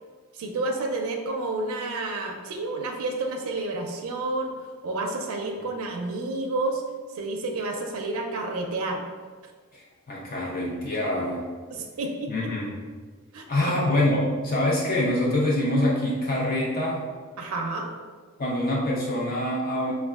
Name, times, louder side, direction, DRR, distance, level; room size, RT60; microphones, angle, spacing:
voice 1, 0.3-4.6 4.8-6.8 7.1-9.0 11.7-12.3 13.3-13.7 17.4-17.9, right 2 dB, 75° right, 2 dB, 0.4 m, -30 dB
voice 2, 9.7-11.4 12.3-12.7 13.5-17.0 18.4-19.9, left 1 dB, 40° left, -4 dB, 0.5 m, -25 dB
5.2 x 2.2 x 2.3 m, 1.5 s
head